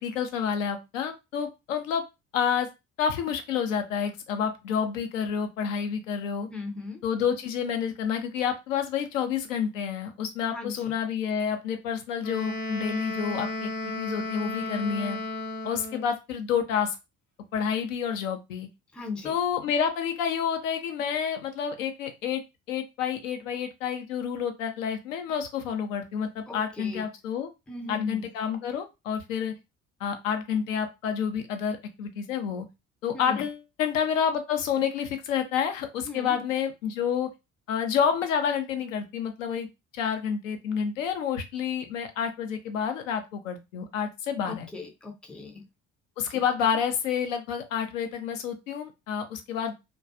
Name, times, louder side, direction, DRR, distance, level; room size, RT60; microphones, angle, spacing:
voice 1, 0.0-2.0 2.3-2.7 3.0-6.5 7.0-13.7 14.0-15.2 15.6-17.0 17.5-18.7 19.2-22.4 22.7-27.5 27.9-29.5 30.0-32.6 33.0-37.3 37.7-39.7 39.9-44.7 46.2-49.7, left 7 dB, 75° left, 7 dB, 0.5 m, -29 dB
voice 2, 6.5-7.0 10.5-10.9 18.9-19.3 26.5-27.1 27.7-28.2 33.1-33.4 36.1-36.4 44.4-45.6 46.3-46.7, left 4 dB, 5° left, 4 dB, 0.4 m, -37 dB
Wind instrument woodwind instrument, 12.2-16.1, left 2 dB, 50° left, 0.9 m, -33 dB
2.2 x 2.2 x 2.5 m, 0.24 s
figure-of-eight pair, 50°, 39 cm